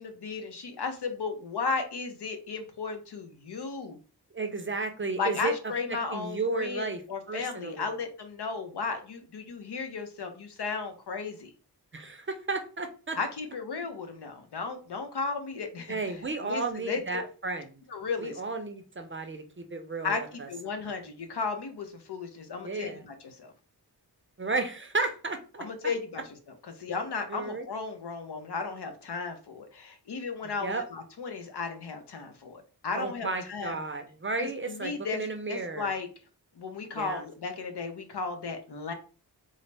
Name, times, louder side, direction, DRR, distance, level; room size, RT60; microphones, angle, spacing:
voice 1, 0.0-4.0 5.2-11.5 13.2-16.0 16.4-17.3 17.9-18.4 20.0-23.5 25.6-26.2 26.8-33.8 34.4-35.2 35.5-36.1 36.6-38.9, left 4 dB, 75° left, 7 dB, 0.7 m, -35 dB
voice 2, 4.3-5.5 6.1-7.0 7.3-7.9 11.9-13.2 15.9-17.8 18.2-20.5 22.6-23.0 24.4-25.9 27.3-27.7 30.6-30.8 32.9-35.9 36.9-37.2, right 3 dB, 30° right, 6 dB, 0.5 m, -33 dB
3.9 x 2.0 x 3.3 m, 0.37 s
wide cardioid pair, 65°, 41 cm